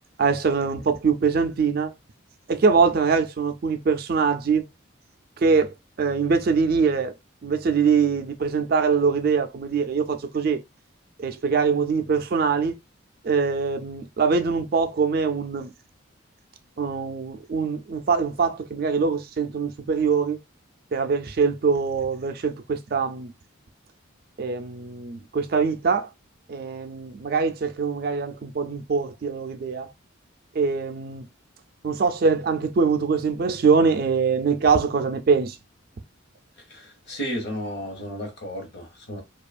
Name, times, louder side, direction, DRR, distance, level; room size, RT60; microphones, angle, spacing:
voice 1, 0.2-1.9 2.5-4.6 5.4-7.1 7.4-10.6 11.2-12.8 13.2-15.7 16.8-20.4 20.9-23.3 24.4-26.1 26.5-29.9 30.5-31.2 31.8-35.6, right 5 dB, 45° right, 0.4 m, -23 dB
voice 2, 36.7-39.2, equal, 55° left, 1.0 m, -33 dB
2.7 x 2.3 x 2.4 m
head